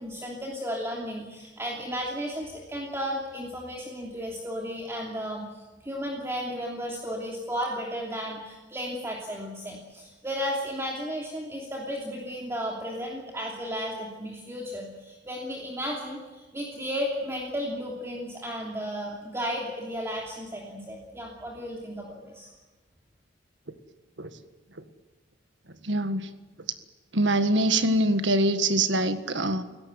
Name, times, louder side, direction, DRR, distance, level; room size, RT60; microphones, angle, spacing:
voice 1, 0.0-22.5, equal, 15° right, -2 dB, 3.0 m, -34 dB
voice 2, 25.8-26.3 27.1-29.6, right 1 dB, 80° right, 9 dB, 1.7 m, -24 dB
30.0 x 17.0 x 8.1 m, 1.2 s
head